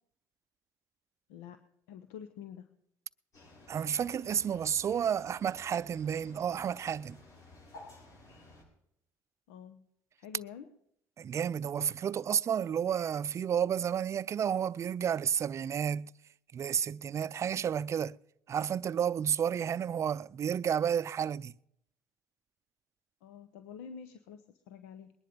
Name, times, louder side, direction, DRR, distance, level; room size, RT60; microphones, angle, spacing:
voice 1, 1.3-1.6 1.9-2.7 9.5-9.8 10.2-10.7 23.2-25.1, left 7 dB, 85° left, 0.9 m, -47 dB
sound 1, 3.3-8.6, left 2 dB, 55° left, 7.7 m, -54 dB
voice 2, 3.7-7.2 11.2-16.1 16.5-18.2 18.5-21.5, right 8 dB, 45° right, 0.5 m, -31 dB
21.0 x 10.5 x 5.2 m
supercardioid pair, 75°, 7 cm